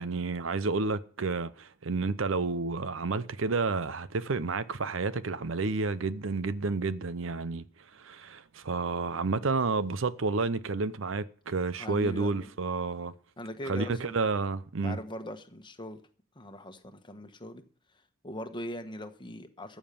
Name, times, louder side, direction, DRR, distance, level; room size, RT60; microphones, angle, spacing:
voice 1, 0.0-7.6 7.9-13.1 13.7-15.0, right 3 dB, 70° right, 0.7 m, -30 dB
voice 2, 11.8-12.5 13.4-14.3 14.8-16.0 16.3-17.6 18.2-19.8, left 1 dB, 25° left, 1.2 m, -40 dB
14.5 x 7.3 x 6.9 m
head